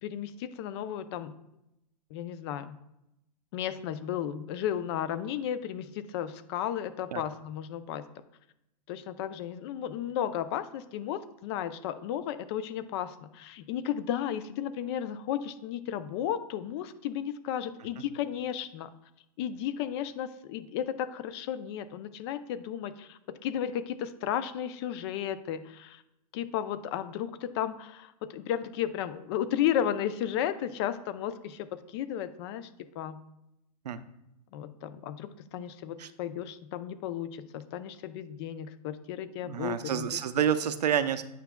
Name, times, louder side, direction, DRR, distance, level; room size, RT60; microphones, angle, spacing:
voice 1, 0.0-1.3 2.1-2.8 3.5-8.0 8.9-18.9 19.4-26.0 26.3-32.7 33.0-33.2 34.5-40.2, left 10 dB, 40° left, 13 dB, 0.5 m, -34 dB
voice 2, 39.5-41.2, right 9 dB, 85° right, 12 dB, 0.6 m, -28 dB
9.2 x 5.8 x 2.2 m, 0.85 s
hypercardioid pair, 135°, 20 cm